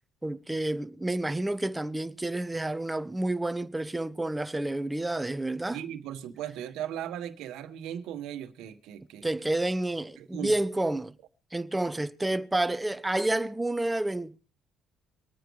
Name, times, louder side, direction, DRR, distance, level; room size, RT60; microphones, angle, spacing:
voice 1, 0.2-5.8 9.2-11.1 11.5-14.4, right 1 dB, 10° right, 0.8 m, -29 dB
voice 2, 5.7-9.3 10.2-10.5, right 10 dB, 80° right, 1.3 m, -37 dB
25.0 x 9.4 x 3.1 m
supercardioid pair, 80°, 0 cm